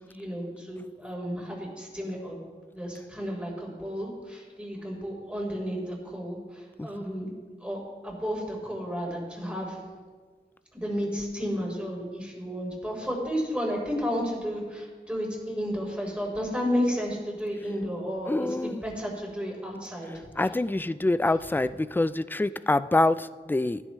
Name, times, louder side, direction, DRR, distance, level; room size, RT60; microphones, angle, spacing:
voice 1, 0.1-2.4 2.7-7.3 7.6-9.8 10.7-20.1, equal, 5° right, -2 dB, 4.3 m, -32 dB
voice 2, 18.3-18.8 20.4-23.8, left 2 dB, 10° left, 15 dB, 0.3 m, -25 dB
16.0 x 11.0 x 3.2 m, 1.5 s
wide cardioid pair, 45°, 19 cm